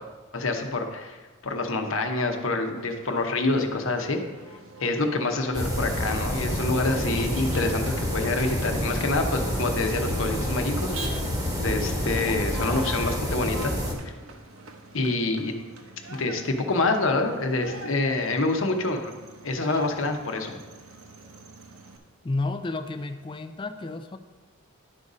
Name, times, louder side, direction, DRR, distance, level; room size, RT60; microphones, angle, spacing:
voice 1, 0.3-1.2 1.4-4.2 4.8-10.9 11.6-13.7 14.0-14.1 14.9-15.5 16.1-19.1 19.4-20.6, left 2 dB, 65° left, 4 dB, 0.9 m, -26 dB
Motor vehicle (road), 2.8-22.0, right 2 dB, 70° right, 0.9 m, -44 dB
sound 1, 5.5-13.9, equal, 15° right, 1.1 m, -28 dB
voice 2, 22.2-24.2, left 2 dB, 20° left, 8 dB, 0.3 m, -31 dB
11.0 x 4.1 x 4.9 m, 1.3 s
head